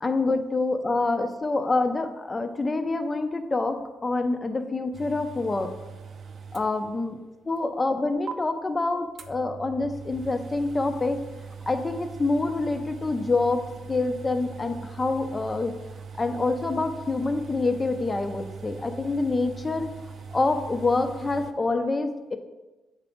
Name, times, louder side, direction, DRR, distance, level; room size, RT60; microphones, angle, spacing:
voice 1, 0.0-5.7 6.5-7.2 7.5-11.2 11.7-15.7 16.2-19.9 20.3-22.4, left 3 dB, 25° left, 8 dB, 0.6 m, -26 dB
sound 1, 4.9-7.2 7.6-7.7 8.3-8.4 9.2-21.5, right 6 dB, 60° right, 0.5 m, -41 dB
8.0 x 3.9 x 3.6 m, 1.1 s
cardioid pair, 85°, 0 cm